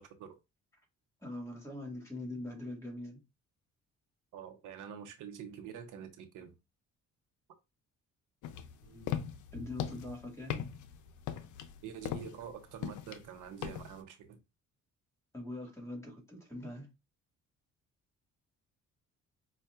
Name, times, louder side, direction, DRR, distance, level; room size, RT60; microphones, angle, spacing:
voice 1, 1.2-3.2 8.8-9.2 9.5-10.6 15.3-16.9, left 1 dB, 10° left, 1.8 m, -43 dB
voice 2, 4.3-6.5 11.8-14.4, right 7 dB, 85° right, 0.8 m, -46 dB
sound 1, 8.4-14.0, left 10 dB, 75° left, 0.6 m, -40 dB
5.3 x 2.4 x 2.4 m
cardioid pair, 90°, 30 cm